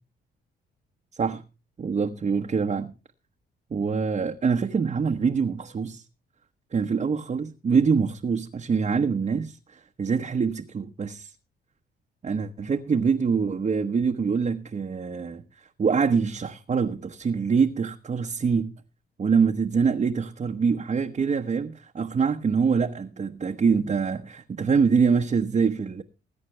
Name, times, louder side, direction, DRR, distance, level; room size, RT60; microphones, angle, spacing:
voice 1, 1.8-2.9 3.7-6.0 6.7-11.3 12.2-18.7 19.2-26.0, right 5 dB, 35° right, 1.1 m, -25 dB
20.5 x 9.1 x 3.3 m
cardioid pair, 90°, 20 cm